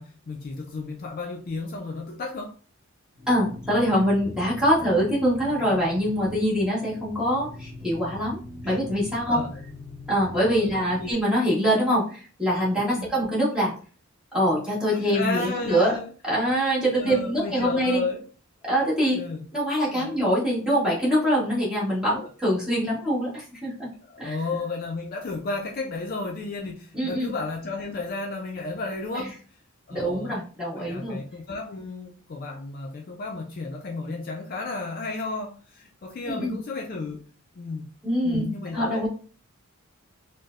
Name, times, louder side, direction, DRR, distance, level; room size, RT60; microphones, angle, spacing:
voice 1, 0.0-2.5 8.6-8.8 9.3-9.5 10.6-11.1 12.9-13.1 14.9-16.1 16.9-18.2 19.1-19.5 19.8-20.2 22.2-22.3 24.1-29.4 29.9-30.3 30.8-37.9 38.2-39.1, left 3 dB, 45° left, 1 dB, 0.4 m, -33 dB
sound 1, 3.2-11.1, left 2 dB, 20° right, 0.9 m, -42 dB
voice 2, 3.3-8.4 8.6-9.4 10.1-13.7 14.3-16.0 16.2-18.0 18.6-19.2 19.5-23.9 24.2-24.4 26.9-27.3 29.1-29.3 29.9-31.2 36.2-36.6 38.0-38.5 38.7-39.1, equal, 5° right, -7 dB, 1.2 m, -24 dB
4.2 x 2.0 x 2.4 m, 0.40 s
head